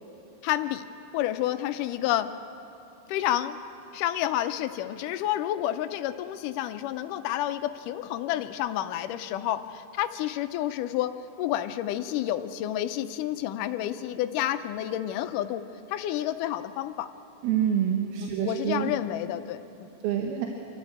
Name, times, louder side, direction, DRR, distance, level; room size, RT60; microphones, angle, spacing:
voice 1, 0.4-0.9 1.1-2.3 3.1-3.6 3.9-17.1 18.2-19.7, left 12 dB, 85° left, 9 dB, 1.9 m, -30 dB
voice 2, 17.4-18.9 20.0-20.5, right 9 dB, 80° right, 2 dB, 3.0 m, -26 dB
26.5 x 13.0 x 8.6 m, 2.8 s
omnidirectional pair, 4.5 m